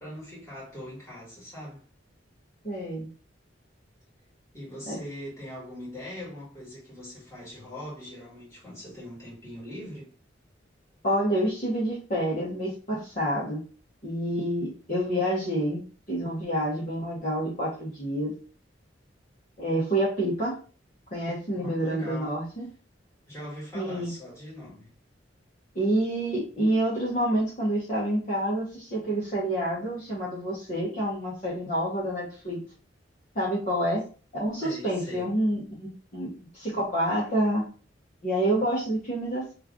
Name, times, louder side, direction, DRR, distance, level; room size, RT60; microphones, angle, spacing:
voice 1, 0.0-1.8 4.5-10.1 21.6-22.4 23.3-24.9 34.6-35.3, left 1 dB, 15° left, 1.8 m, -41 dB
voice 2, 2.6-3.1 4.9-5.0 11.0-13.6 14.0-15.8 16.1-18.3 19.6-20.5 21.1-22.7 23.7-24.1 25.7-32.6 33.3-34.0 34.3-37.6 38.2-39.5, right 1 dB, 40° left, 1.0 m, -28 dB
3.1 x 2.5 x 3.5 m
head